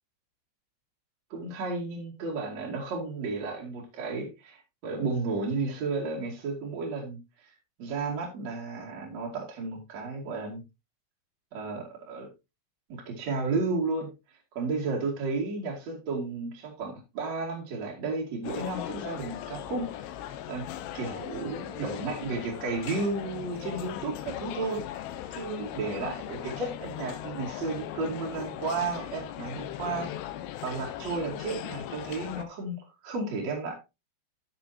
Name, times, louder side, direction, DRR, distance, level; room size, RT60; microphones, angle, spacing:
voice 1, 1.3-4.6 4.8-7.2 7.8-10.6 11.5-12.3 12.9-14.1 14.5-19.9 20.5-20.6 20.9-25.0 25.3-30.1 30.6-32.8 33.0-33.7, right 3 dB, 45° right, -2 dB, 2.7 m, -33 dB
sound 1, 18.4-32.4, left 12 dB, 85° left, 2.5 m, -38 dB
12.5 x 7.1 x 2.8 m, 0.25 s
omnidirectional pair, 5.8 m